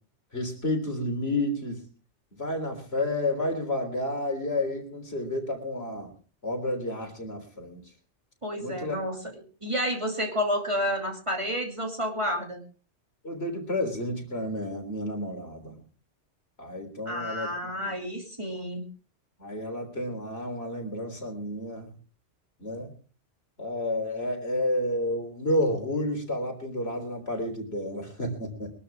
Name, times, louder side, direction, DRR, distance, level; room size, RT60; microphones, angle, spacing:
voice 1, 0.3-1.8 2.4-6.1 6.4-7.8 8.6-9.0 13.2-15.8 16.6-17.9 19.4-21.9 22.6-22.9 23.6-28.7, left 1 dB, 60° left, 4 dB, 3.9 m, -30 dB
voice 2, 8.4-9.2 9.6-12.6 17.1-18.8, equal, 25° right, 1 dB, 2.7 m, -30 dB
23.0 x 12.5 x 3.6 m, 0.38 s
omnidirectional pair, 1.2 m